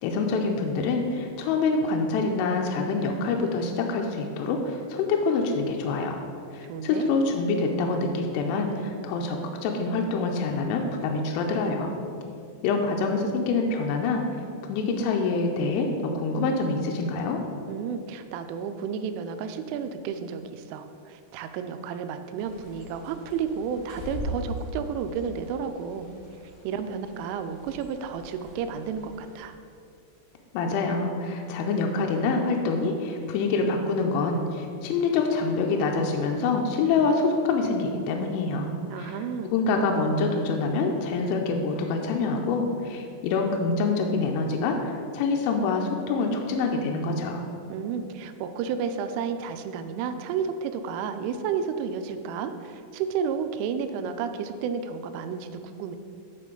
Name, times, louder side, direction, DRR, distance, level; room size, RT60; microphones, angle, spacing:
voice 1, 0.0-6.2 6.5-11.9 12.6-14.2 14.7-17.4 30.5-39.1 39.4-47.4, left 3 dB, 85° left, 2 dB, 3.1 m, -26 dB
voice 2, 6.6-7.1 17.7-26.1 26.6-29.6 38.9-39.6 47.7-56.0, right 6 dB, 85° right, 8 dB, 3.0 m, -32 dB
Bird, 22.4-29.4, equal, 60° left, 3.7 m, -41 dB
12.0 x 4.2 x 3.8 m, 2.4 s
omnidirectional pair, 5.7 m